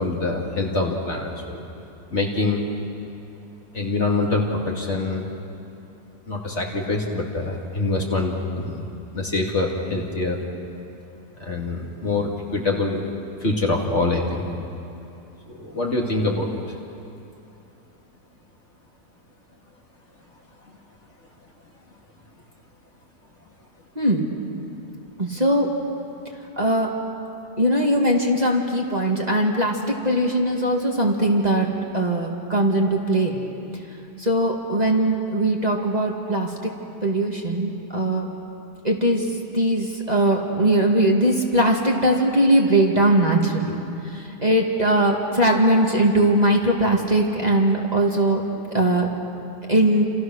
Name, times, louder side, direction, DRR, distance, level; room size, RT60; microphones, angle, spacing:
voice 1, 0.0-1.6 2.1-2.6 3.7-5.3 6.3-8.8 9.1-10.4 11.4-13.0 13.4-14.5 15.5-16.5, left 2 dB, 40° left, -1 dB, 3.0 m, -25 dB
voice 2, 24.0-24.3 25.2-25.7 26.6-26.9 27.6-31.7 31.9-33.4 34.2-36.7 37.0-38.3 38.8-39.3 39.5-43.8 44.1-48.4 48.7-49.1 49.7-50.0, right 1 dB, 25° right, -1 dB, 2.3 m, -20 dB
30.0 x 28.0 x 6.4 m, 2.8 s
omnidirectional pair, 1.8 m